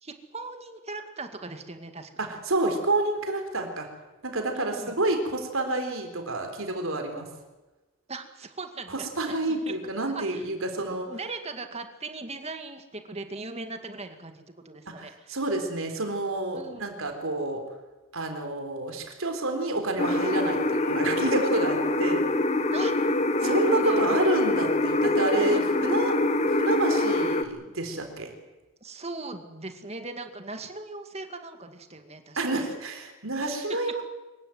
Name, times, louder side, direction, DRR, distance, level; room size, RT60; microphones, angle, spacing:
voice 1, 0.0-2.3 4.5-5.0 8.1-9.3 9.7-9.8 10.1-10.5 10.7-15.4 16.5-16.8 22.7-22.9 23.4-24.0 25.5-25.9 28.8-32.6, right 3 dB, 30° right, 7 dB, 2.1 m, -39 dB
voice 2, 2.2-3.9 4.2-7.3 8.9-11.1 14.9-17.6 18.1-22.3 23.4-26.2 26.5-28.3 32.4-34.0, right 2 dB, 70° right, 5 dB, 3.9 m, -29 dB
sound 1, 20.0-27.4, left 2 dB, 30° left, 1.3 m, -25 dB
25.0 x 15.0 x 9.5 m, 1.1 s
head